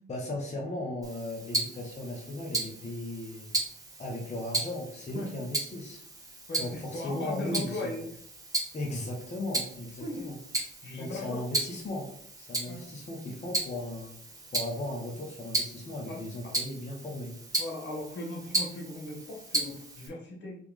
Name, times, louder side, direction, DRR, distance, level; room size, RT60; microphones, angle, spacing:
voice 1, 0.1-3.6 4.0-6.0 6.6-8.0 8.7-10.4 10.9-12.1 12.4-14.1 14.5-17.3, left 1 dB, 35° left, -1 dB, 1.0 m, -37 dB
Tick-tock, 1.0-20.1, right 2 dB, 15° right, 1.1 m, -36 dB
voice 2, 6.5-8.1 10.0-10.3 10.8-11.4 12.7-12.8 16.1-16.2 17.6-20.6, left 2 dB, 65° left, -1 dB, 1.4 m, -37 dB
3.4 x 3.0 x 3.5 m, 0.65 s
cardioid pair, 90°, 20 cm